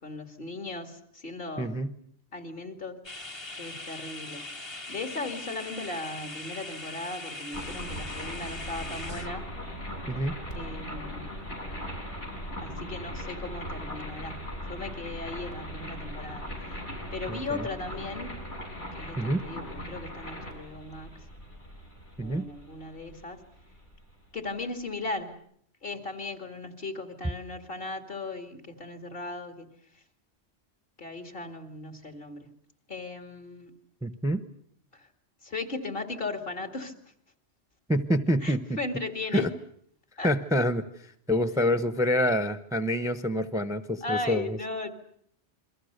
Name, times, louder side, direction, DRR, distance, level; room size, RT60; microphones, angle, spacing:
voice 1, 0.0-1.8 2.3-3.0 3.6-4.5 4.9-9.5 10.5-11.4 12.6-14.4 14.7-16.8 17.1-18.4 18.9-21.2 22.2-23.4 24.3-25.4 25.8-29.7 31.0-32.5 32.9-33.7 34.9-35.1 35.4-36.9 38.4-39.5 40.2-40.3 44.0-44.9, left 2 dB, 50° left, 6 dB, 2.6 m, -37 dB
voice 2, 1.6-1.9 10.1-10.4 17.3-17.7 19.2-19.4 22.2-22.5 34.0-34.4 37.9-38.6 39.3-39.5 40.2-40.8 41.3-44.6, equal, 5° right, 10 dB, 0.9 m, -26 dB
sound 1, 3.0-9.3, left 2 dB, 25° left, 1.1 m, -41 dB
sound 2, 7.5-24.4, equal, 80° left, 7.2 m, -39 dB
28.5 x 23.0 x 6.7 m, 0.66 s
omnidirectional pair, 1.2 m